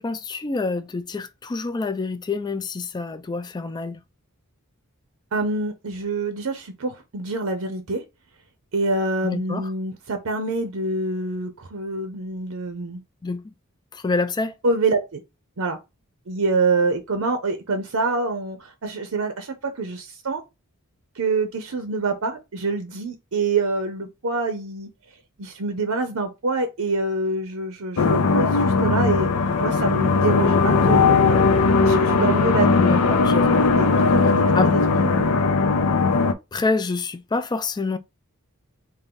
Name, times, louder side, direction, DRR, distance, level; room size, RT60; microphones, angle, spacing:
voice 1, 0.0-4.0 9.2-9.7 13.2-13.4 13.9-14.5 32.8-33.7 34.5-34.7 36.5-38.0, left 3 dB, 20° left, 0.3 m, -27 dB
voice 2, 5.3-8.0 8.7-13.0 14.6-15.2 15.6-15.8 16.3-20.4 21.2-24.9 25.4-29.3 29.6-31.4 31.8-33.1 33.8-35.4, right 3 dB, 70° right, 0.7 m, -26 dB
sound 1, 28.0-36.3, left 4 dB, 80° left, 0.5 m, -18 dB
3.7 x 2.5 x 3.7 m
head